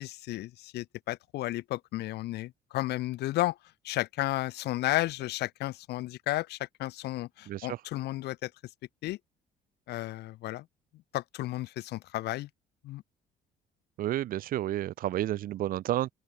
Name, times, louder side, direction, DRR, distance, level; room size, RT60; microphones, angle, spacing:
voice 1, 0.0-3.6 3.8-8.5 9.0-9.2 9.9-10.6 11.1-12.5 12.8-13.0, left 16 dB, 80° left, 1.8 m, -33 dB
voice 2, 7.5-7.8 14.0-16.1, right 13 dB, 55° right, 0.6 m, -31 dB
open air
cardioid pair, 110°, 17 cm